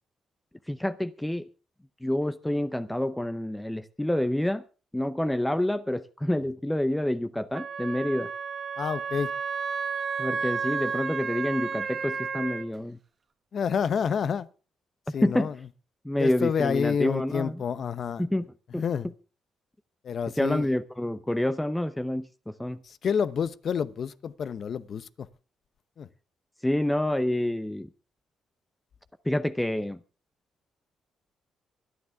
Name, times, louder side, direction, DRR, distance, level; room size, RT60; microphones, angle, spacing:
voice 1, 0.7-1.5 2.0-4.6 4.9-8.3 10.2-13.0 15.2-15.5 16.0-17.6 18.2-18.5 18.7-18.8 20.4-22.8 26.6-27.9 29.2-30.0, left 1 dB, 5° left, 0.7 m, -28 dB
Wind instrument woodwind instrument, 7.5-12.7, right 6 dB, 45° right, 1.5 m, -32 dB
voice 2, 8.8-9.3 13.5-14.5 15.1-15.6 16.2-18.2 18.8-19.1 20.0-20.7 22.8-25.3 26.0-26.1, left 7 dB, 55° left, 0.8 m, -28 dB
24.5 x 9.7 x 3.6 m
cardioid pair, 90°, 0 cm